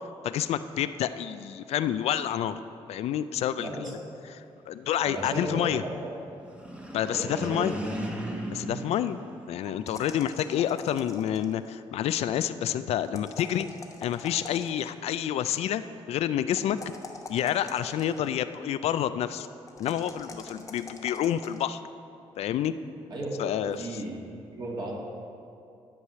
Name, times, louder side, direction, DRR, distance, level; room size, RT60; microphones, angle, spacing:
voice 1, 0.2-2.6 2.9-4.0 4.3-5.8 6.9-7.7 8.5-9.2 9.5-13.7 14.0-15.8 16.1-16.8 17.3-19.5 19.8-21.8 22.4-22.7 23.4-24.0, left 10 dB, 75° left, 12 dB, 0.4 m, -28 dB
voice 2, 3.6-3.9 5.0-6.1 7.1-7.7 23.1-23.3 23.8-24.2 24.5-24.9, right 2 dB, 40° right, -3 dB, 2.1 m, -35 dB
sound 1, 6.4-10.0, equal, 10° right, 1.1 m, -37 dB
sound 2, 9.9-11.7 13.0-15.0 16.5-18.4 19.7-21.6, left 3 dB, 30° left, 1.0 m, -44 dB
11.5 x 4.8 x 6.7 m, 2.5 s
cardioid pair, 110°, 11 cm